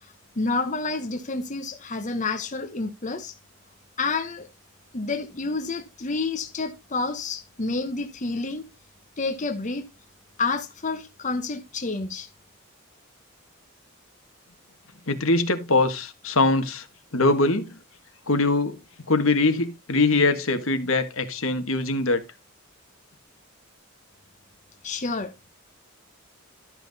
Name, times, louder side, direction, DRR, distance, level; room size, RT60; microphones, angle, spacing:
voice 1, 0.0-3.4 4.0-4.5 4.9-8.6 9.2-9.8 10.4-12.3 24.8-25.3, left 3 dB, 35° left, 1.0 m, -29 dB
voice 2, 15.1-16.8 17.1-17.8 18.3-18.8 19.1-22.2, left 2 dB, 75° left, 1.6 m, -22 dB
12.5 x 6.0 x 4.1 m
head